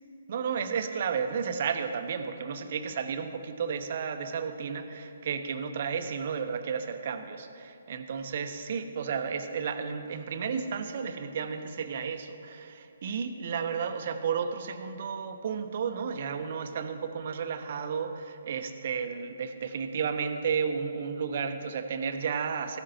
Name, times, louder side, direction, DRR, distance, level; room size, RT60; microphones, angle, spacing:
voice 1, 0.3-22.8, right 6 dB, 50° right, 8 dB, 0.8 m, -32 dB
15.0 x 12.5 x 2.9 m, 2.5 s
figure-of-eight pair, 140°, 0 cm